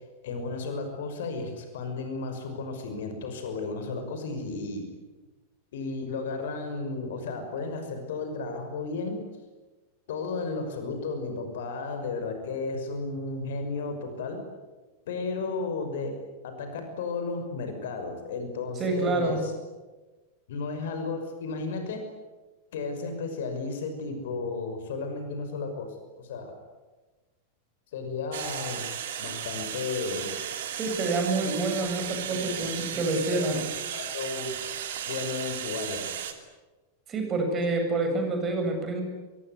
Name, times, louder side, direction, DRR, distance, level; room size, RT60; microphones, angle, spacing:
voice 1, 0.2-4.8 5.7-9.2 10.1-14.4 15.1-16.2 16.4-19.5 20.5-22.0 22.7-25.9 26.2-26.6 27.9-28.9 29.2-30.3 31.4-33.6 33.9-34.6 35.1-36.1, left 3 dB, 55° left, 6 dB, 5.9 m, -33 dB
voice 2, 18.8-19.4 30.7-33.6 37.1-39.0, right 3 dB, 25° right, 4 dB, 7.7 m, -27 dB
sound 1, 28.3-36.3, right 9 dB, 60° right, 2.9 m, -35 dB
25.5 x 23.0 x 9.7 m, 1.2 s
figure-of-eight pair, 90°, 0 cm